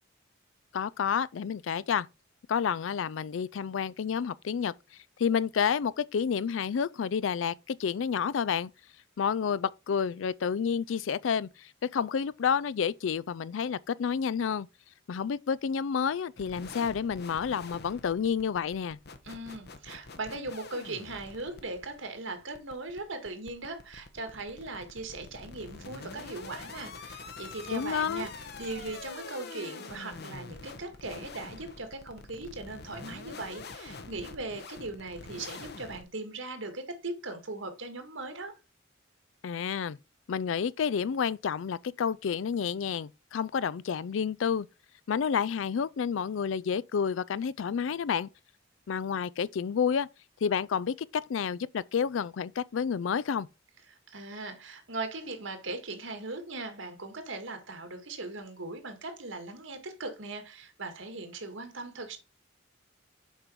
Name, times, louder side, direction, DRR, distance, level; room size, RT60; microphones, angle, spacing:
voice 1, 0.7-2.1 2.5-4.7 5.2-8.7 9.2-14.7 15.1-19.0 27.7-28.3 39.4-40.0 40.3-44.7 45.1-48.3 48.9-50.1 50.4-53.5, left 7 dB, 75° left, 0.4 m, -30 dB
sound 1, 16.4-36.0, left 3 dB, 55° left, 1.0 m, -46 dB
voice 2, 19.2-38.6 53.9-62.2, right 2 dB, 85° right, 2.0 m, -39 dB
7.2 x 5.2 x 4.6 m
head